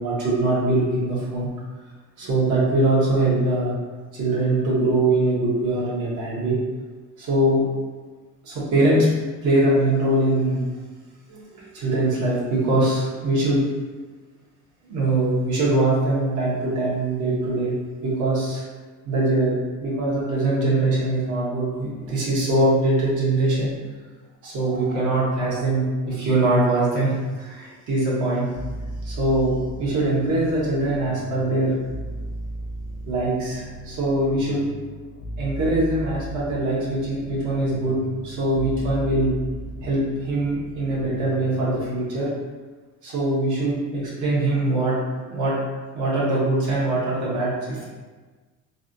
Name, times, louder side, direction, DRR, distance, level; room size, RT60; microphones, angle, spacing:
voice 1, 0.0-1.5 2.2-3.7 4.1-6.6 7.2-7.6 8.4-9.1 9.4-10.6 11.3-13.6 14.9-17.7 18.0-18.6 19.0-23.7 24.4-28.5 29.0-31.8 33.1-34.7 35.4-39.4 39.8-42.3 43.0-45.6 45.9-47.8, right 2 dB, 80° right, -6 dB, 1.2 m, -22 dB
sound 1, 28.5-41.9, equal, 70° left, 0.5 m, -36 dB
3.3 x 2.5 x 2.6 m, 1.3 s
cardioid pair, 125°, 30 cm